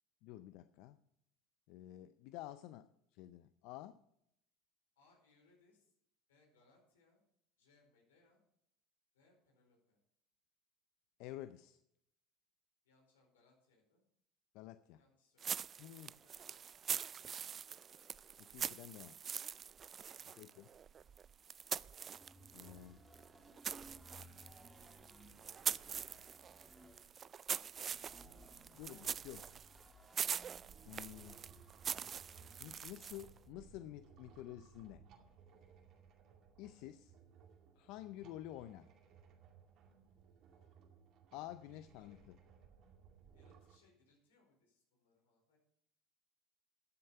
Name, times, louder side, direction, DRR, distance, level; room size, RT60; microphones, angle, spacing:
voice 1, 0.2-1.0 1.7-4.0 11.2-11.8 14.5-15.0 15.8-16.1 18.4-19.2 20.4-20.7 22.5-23.0 28.7-29.5 30.9-31.4 32.6-35.0 36.6-37.1 37.8-38.9 41.3-42.4, left 14 dB, 65° left, 13 dB, 0.5 m, -50 dB
voice 2, 4.9-5.9 6.3-7.2 7.6-8.4 9.1-10.0 12.8-14.0 14.9-15.6 16.0-17.7 20.0-20.5 27.6-28.2 28.6-29.2 31.9-32.2 36.8-37.2 40.5-40.8 41.5-42.4 43.3-45.6, left 3 dB, 90° left, 0 dB, 4.6 m, -73 dB
sound 1, 15.4-22.8 23.1-33.4, right 7 dB, 35° right, 0.3 m, -44 dB
sound 2, 22.1-32.9, equal, ahead, 1.8 m, -61 dB
sound 3, 30.5-43.8, right 7 dB, 55° right, 2.3 m, -63 dB
12.5 x 7.5 x 5.7 m, 0.76 s
hypercardioid pair, 85°, 0 cm